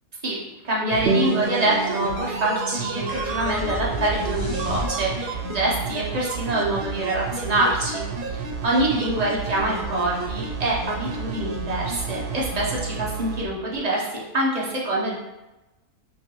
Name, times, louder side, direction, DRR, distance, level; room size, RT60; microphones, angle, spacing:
voice 1, 0.6-15.2, right 1 dB, 30° right, -4 dB, 0.8 m, -25 dB
sound 1, 0.9-13.4 13.7-13.8, right 4 dB, 85° right, 1.2 m, -31 dB
sound 2, 1.1-6.1, right 3 dB, 65° right, 0.6 m, -31 dB
sound 3, 3.1-5.4, equal, 35° left, 0.8 m, -31 dB
5.3 x 3.0 x 3.1 m, 1.0 s
omnidirectional pair, 1.6 m